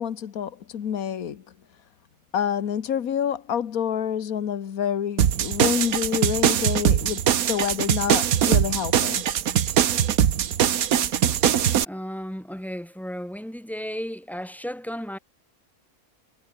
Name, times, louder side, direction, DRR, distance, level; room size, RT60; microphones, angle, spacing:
voice 1, 0.0-1.4 2.3-9.3, left 8 dB, 75° left, 1.7 m, -28 dB
sound 1, 5.2-11.8, right 9 dB, 75° right, 1.5 m, -22 dB
voice 2, 11.9-15.2, equal, ahead, 1.2 m, -34 dB
omnidirectional pair, 1.5 m